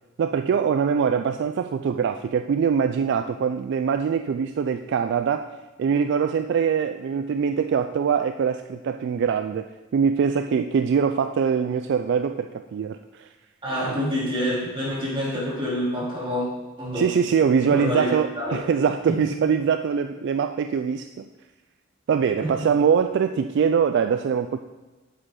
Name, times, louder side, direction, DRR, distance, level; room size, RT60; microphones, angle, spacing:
voice 1, 0.2-5.5 5.8-9.7 9.9-13.3 13.9-14.0 16.9-21.3 22.1-24.6, right 6 dB, 60° right, 8 dB, 0.3 m, -23 dB
voice 2, 13.6-16.5 16.8-17.1 17.7-18.8 19.1-19.5 22.4-22.7, equal, 25° right, -7 dB, 3.1 m, -27 dB
8.1 x 7.9 x 3.8 m, 1.2 s
head